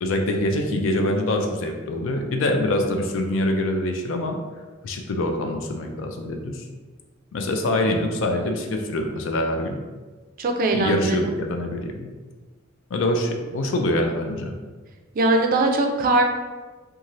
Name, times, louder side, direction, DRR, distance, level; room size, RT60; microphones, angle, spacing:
voice 1, 0.0-4.4 4.8-6.6 7.3-9.8 10.7-12.1 12.9-14.5, left 1 dB, 75° left, 4 dB, 0.4 m, -24 dB
voice 2, 10.4-11.3 15.1-16.2, right 2 dB, 45° right, 3 dB, 0.3 m, -21 dB
2.6 x 2.4 x 3.0 m, 1.3 s
head